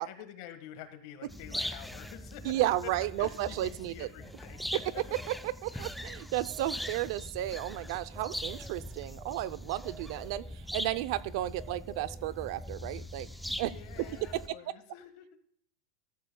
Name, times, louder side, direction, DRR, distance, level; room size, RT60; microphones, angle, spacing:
voice 1, 0.0-2.6 3.2-5.0 5.7-5.9 13.7-15.2, left 11 dB, 55° left, 8 dB, 1.6 m, -48 dB
sound 1, 1.3-14.5, equal, ahead, 0.5 m, -41 dB
voice 2, 2.4-4.1 5.3-13.3 13.6-13.7, right 14 dB, 55° right, 15 dB, 0.5 m, -33 dB
14.5 x 14.0 x 2.3 m, 0.65 s
supercardioid pair, 160°, 3 cm